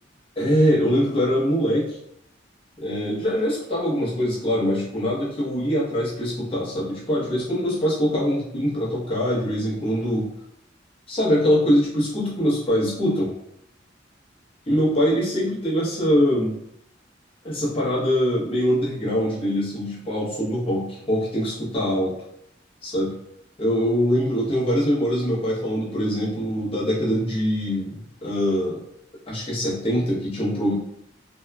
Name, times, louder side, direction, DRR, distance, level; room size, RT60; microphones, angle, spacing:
voice 1, 0.4-2.0 2.8-10.3 11.1-13.3 14.7-16.5 17.4-22.1 22.8-23.2 23.6-28.8 29.3-30.7, equal, 30° left, -7 dB, 0.9 m, -23 dB
2.8 x 2.2 x 2.2 m, 0.73 s
head